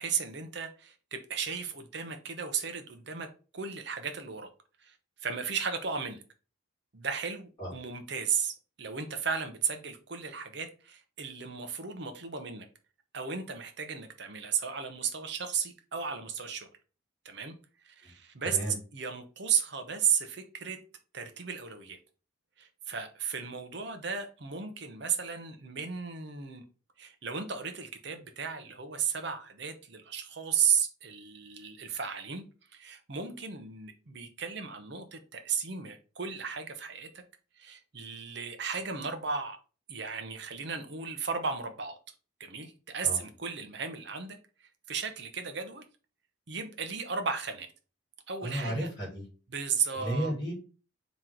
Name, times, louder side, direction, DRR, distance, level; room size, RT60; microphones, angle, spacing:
voice 1, 0.0-3.3 3.5-4.5 4.8-6.2 6.9-12.7 13.1-16.7 17.2-17.6 17.8-18.6 18.9-20.8 21.1-22.0 22.6-26.6 27.0-32.4 32.7-37.1 37.6-39.6 39.9-42.0 42.4-45.8 46.5-47.7 48.3-48.9 49.5-50.3, right 6 dB, 55° right, 0.7 m, -34 dB
voice 2, 18.4-18.7 43.0-43.2 48.4-49.2 50.0-50.5, right 1 dB, 20° left, 2.0 m, -33 dB
3.8 x 3.0 x 4.4 m
head